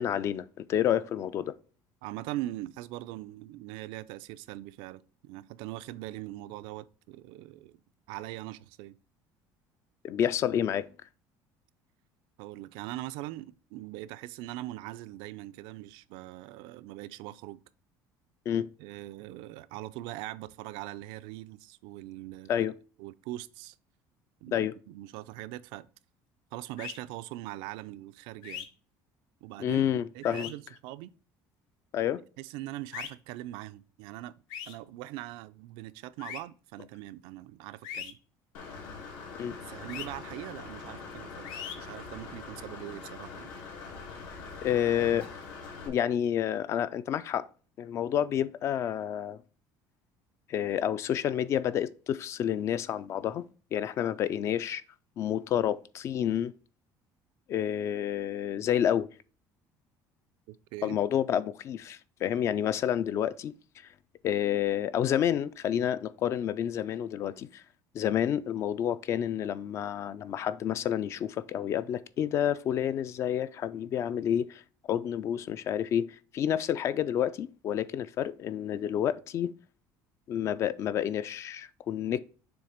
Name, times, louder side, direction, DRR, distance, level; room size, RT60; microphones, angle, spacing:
voice 1, 0.0-1.5 10.0-10.9 18.5-18.7 22.5-22.8 24.5-24.7 29.6-30.5 31.9-32.2 39.4-39.6 44.6-45.3 45.9-47.5 47.8-49.4 50.5-54.8 55.2-56.5 57.5-59.1 60.8-63.5 64.2-67.6 67.9-74.6 74.9-79.5 80.3-82.2, left 10 dB, 35° left, 0.3 m, -29 dB
voice 2, 2.0-7.8 8.1-9.0 12.4-17.6 18.8-22.7 23.0-23.7 24.4-25.9 26.5-28.7 29.4-29.8 30.1-31.1 32.4-34.3 34.7-38.2 39.6-43.5 60.5-61.0, right 16 dB, 80° right, 0.4 m, -41 dB
Whistle from lips, 26.8-27.0 28.4-28.7 30.2-30.5 32.9-33.1 34.5-34.7 36.2-36.4 37.8-38.1 39.9-40.1 41.4-41.8, left 9 dB, 65° left, 0.9 m, -39 dB
Engine / Mechanisms, 38.5-45.9, left 4 dB, 90° left, 2.5 m, -43 dB
7.0 x 3.3 x 5.0 m
cardioid pair, 175°, 8 cm